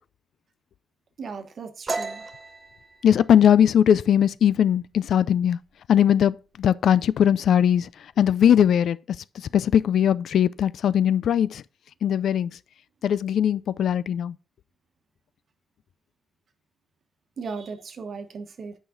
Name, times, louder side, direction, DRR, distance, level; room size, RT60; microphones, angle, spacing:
voice 1, 1.2-2.2 17.4-18.8, right 5 dB, 50° right, 1.1 m, -36 dB
sound 1, 1.9-5.3 5.6-6.0 6.3-6.9 7.1-7.9, right 3 dB, 25° right, 0.8 m, -36 dB
voice 2, 3.0-5.6 5.9-7.9 8.2-9.2 9.5-11.6 12.0-12.5 13.0-14.4, left 9 dB, 70° left, 0.3 m, -20 dB
8.6 x 5.0 x 3.8 m
wide cardioid pair, 145°, 0 cm